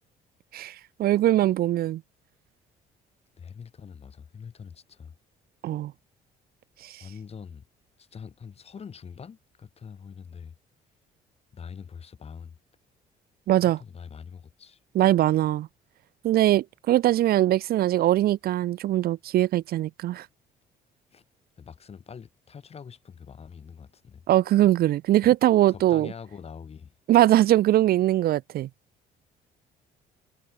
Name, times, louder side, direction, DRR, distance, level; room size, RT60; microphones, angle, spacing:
voice 1, 0.5-2.0 5.6-5.9 13.5-13.8 14.9-15.7 16.2-20.2 24.3-26.1 27.1-28.7, right 13 dB, 65° right, 1.0 m, -21 dB
voice 2, 3.4-5.1 7.0-7.6 8.0-10.5 11.5-12.6 13.6-14.8 21.1-21.2 21.6-24.2 25.2-25.3 25.7-26.9, left 6 dB, 35° left, 4.6 m, -44 dB
cardioid pair, 110°, 17 cm